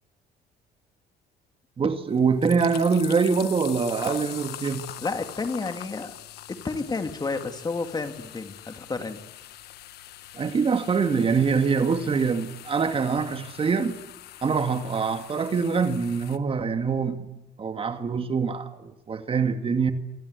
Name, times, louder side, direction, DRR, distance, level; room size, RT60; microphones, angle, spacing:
voice 1, 1.8-4.8 10.3-14.0 14.4-17.3 17.6-19.9, right 5 dB, 35° right, 2.1 m, -24 dB
sound 1, 2.1-16.4, left 13 dB, 75° left, 1.4 m, -43 dB
voice 2, 5.0-6.1 6.5-9.2, left 3 dB, 25° left, 2.6 m, -31 dB
28.0 x 25.5 x 8.3 m
cardioid pair, 110°, 17 cm